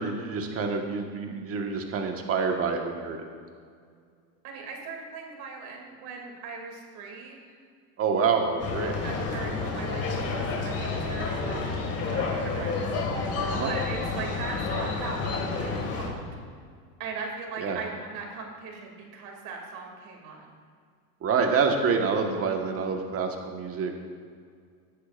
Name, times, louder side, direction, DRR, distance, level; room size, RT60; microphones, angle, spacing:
voice 1, 0.0-3.3 8.0-8.9 13.5-13.7 17.6-17.8 21.2-23.9, right 5 dB, 30° right, 3 dB, 1.5 m, -27 dB
voice 2, 4.4-7.6 8.9-11.7 12.0-12.8 13.5-16.3 17.0-20.5, right 4 dB, 45° right, 0 dB, 2.8 m, -39 dB
sound 1, 8.6-16.1, left 4 dB, 30° left, 2.1 m, -30 dB
17.5 x 9.9 x 2.6 m, 2.1 s
supercardioid pair, 115°, 48 cm